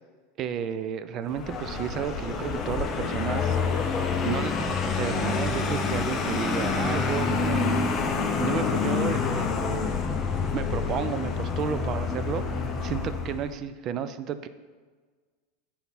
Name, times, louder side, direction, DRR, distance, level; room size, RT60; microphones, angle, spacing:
voice 1, 0.4-3.6 4.2-7.8 8.4-9.9 10.5-14.5, right 8 dB, 40° right, 12 dB, 0.4 m, -32 dB
Vehicle, 1.3-13.5, left 5 dB, 30° left, 0.7 m, -27 dB
8.0 x 4.1 x 4.1 m, 1.5 s
supercardioid pair, 130°, 0 cm